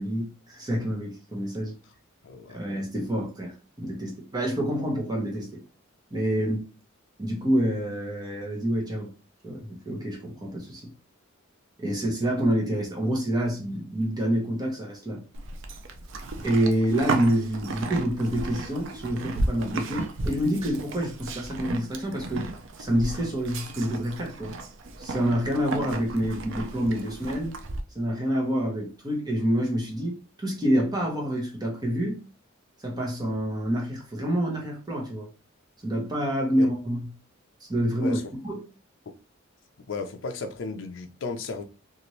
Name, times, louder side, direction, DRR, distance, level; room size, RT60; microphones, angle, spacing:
voice 1, 0.0-1.7 2.5-5.5 6.1-6.6 7.2-9.1 9.4-10.9 11.8-15.2 16.4-22.5 22.8-24.5 25.0-27.6 27.9-32.2 32.8-35.3 35.8-37.1 37.7-38.2 38.4-38.6, equal, 20° right, 0.9 m, -27 dB
voice 2, 2.2-2.6 6.4-6.5 11.9-12.0 36.6-36.7 38.0-38.2 39.9-41.6, left 4 dB, 60° left, 0.5 m, -35 dB
Livestock farm animals working animals, 15.3-27.8, right 2 dB, 60° right, 0.4 m, -34 dB
2.7 x 2.5 x 3.0 m
head